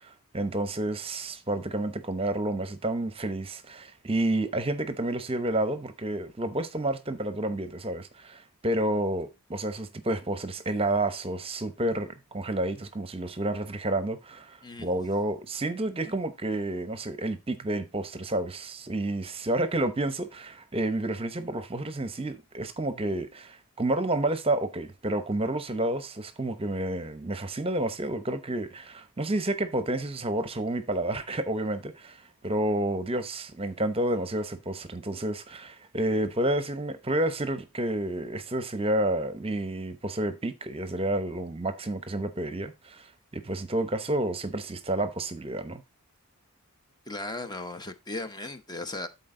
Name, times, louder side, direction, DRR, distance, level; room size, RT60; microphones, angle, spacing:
voice 1, 0.0-32.2 32.4-45.8, right 1 dB, 25° right, 0.8 m, -30 dB
voice 2, 47.1-49.1, left 2 dB, 20° left, 0.8 m, -36 dB
12.5 x 4.3 x 3.7 m
head